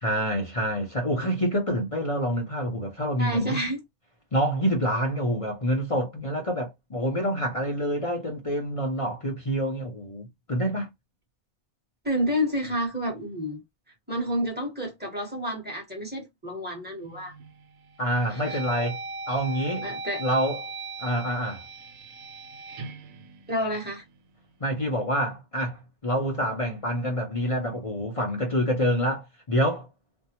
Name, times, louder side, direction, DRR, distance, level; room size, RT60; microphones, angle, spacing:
voice 1, 0.0-3.6 4.3-10.9 18.0-19.0 19.3-19.9 20.2-20.6 21.0-21.6 24.6-29.9, equal, 40° left, 0.5 m, -27 dB
voice 2, 3.2-3.8 12.0-13.6 14.1-17.3 18.3-18.6 19.8-20.2 23.5-24.0, equal, 10° right, 1.1 m, -29 dB
sound 1, 17.1-17.5 18.0-24.2, right 3 dB, 80° right, 1.1 m, -39 dB
2.6 x 2.2 x 2.8 m
omnidirectional pair, 1.4 m